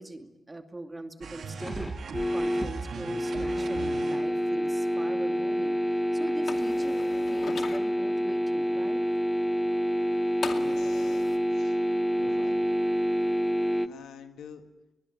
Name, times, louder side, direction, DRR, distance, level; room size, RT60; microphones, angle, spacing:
voice 1, 0.0-1.9 2.3-5.8 6.1-9.0, right 2 dB, 25° right, 6 dB, 2.5 m, -42 dB
sound 1, 1.2-4.6, right 5 dB, 65° right, 2.0 m, -39 dB
sound 2, 1.6-13.9, equal, 15° left, 1.5 m, -27 dB
sound 3, 6.5-7.8 10.4-11.4, left 5 dB, 65° left, 2.3 m, -38 dB
voice 2, 10.6-11.8 12.2-12.6 13.8-14.6, left 7 dB, 80° left, 7 dB, 1.9 m, -48 dB
22.5 x 20.5 x 9.7 m, 0.98 s
supercardioid pair, 40°, 0 cm